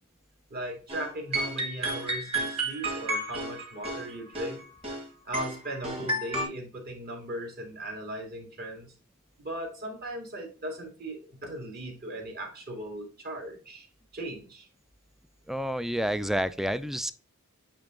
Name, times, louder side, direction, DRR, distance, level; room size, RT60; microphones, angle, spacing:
voice 1, 0.5-4.6 5.2-8.9 9.4-13.9 14.1-14.7, right 1 dB, 45° right, 2.3 m, -38 dB
sound 1, 0.9-1.1 1.3-5.1 5.3-6.5, right 1 dB, 30° right, 2.0 m, -32 dB
voice 2, 15.5-17.1, equal, ahead, 0.3 m, -29 dB
8.7 x 3.0 x 3.7 m
head